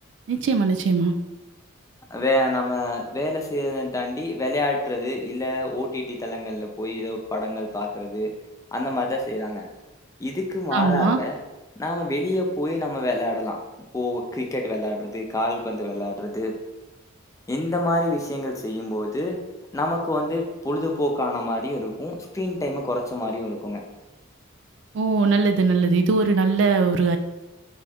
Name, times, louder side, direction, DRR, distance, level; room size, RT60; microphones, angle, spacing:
voice 1, 0.3-1.1 10.7-11.2 24.9-27.2, right 4 dB, 60° right, 8 dB, 0.3 m, -20 dB
voice 2, 2.1-8.3 8.7-9.6 10.2-11.4 11.8-13.6 13.9-16.5 17.5-19.4 19.7-23.8, left 1 dB, 15° left, 2 dB, 0.4 m, -27 dB
4.2 x 2.4 x 4.2 m, 1.1 s
head